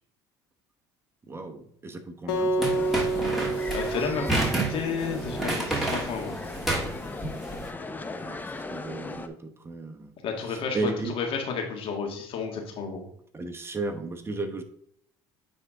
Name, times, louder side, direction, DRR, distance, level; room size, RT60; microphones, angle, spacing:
voice 1, 1.3-3.1 8.2-10.1 10.4-11.1 13.3-14.6, right 3 dB, 20° right, 6 dB, 0.9 m, -35 dB
Acoustic guitar, 2.3-5.5, right 2 dB, 80° left, 1.1 m, -29 dB
sound 1, 2.6-7.6, right 2 dB, 5° right, 2.6 m, -30 dB
sound 2, 2.7-9.3, left 3 dB, 15° left, 0.7 m, -37 dB
voice 2, 3.7-4.2 4.7-6.3 10.2-13.0, left 5 dB, 55° left, 2 dB, 1.8 m, -31 dB
9.3 x 3.5 x 3.6 m, 0.69 s
supercardioid pair, 80°, 11 cm